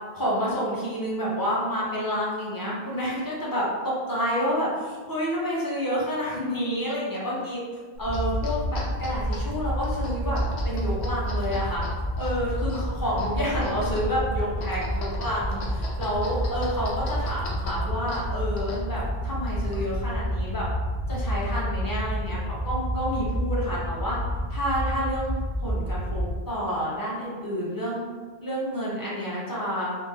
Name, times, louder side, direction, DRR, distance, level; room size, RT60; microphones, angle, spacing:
voice 1, 0.1-7.6 8.0-11.8 12.2-20.7 21.1-24.2 24.5-25.3 25.6-28.0 28.4-30.0, equal, 25° left, -6 dB, 0.7 m, -29 dB
sound 1, 7.9-20.1, equal, 85° left, 0.9 m, -39 dB
sound 2, 8.0-26.4, equal, 20° right, 0.4 m, -29 dB
3.3 x 2.0 x 3.2 m, 1.4 s
omnidirectional pair, 1.1 m